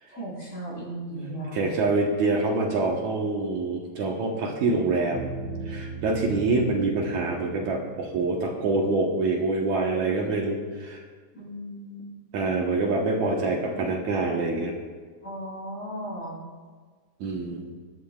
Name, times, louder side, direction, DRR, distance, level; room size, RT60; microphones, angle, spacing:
voice 1, 0.1-1.7 11.3-12.1 15.2-16.4, right 1 dB, 25° left, -5 dB, 3.6 m, -36 dB
voice 2, 1.1-5.3 5.7-11.0 12.3-14.7 17.2-17.7, right 3 dB, 70° right, -1 dB, 2.5 m, -26 dB
sound 1, 5.1-9.5, right 3 dB, 40° right, 2.9 m, -38 dB
22.5 x 11.0 x 2.4 m, 1.5 s
omnidirectional pair, 3.8 m